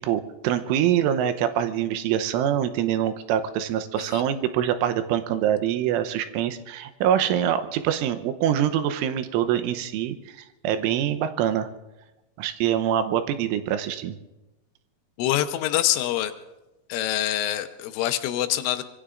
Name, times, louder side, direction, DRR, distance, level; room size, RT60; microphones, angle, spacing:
voice 1, 0.0-10.4 10.6-11.7 12.4-14.2, right 10 dB, 90° right, 10 dB, 3.4 m, -24 dB
voice 2, 15.2-16.3 16.9-18.8, left 13 dB, 85° left, 9 dB, 3.4 m, -25 dB
25.0 x 22.5 x 2.5 m, 1.0 s
omnidirectional pair, 5.5 m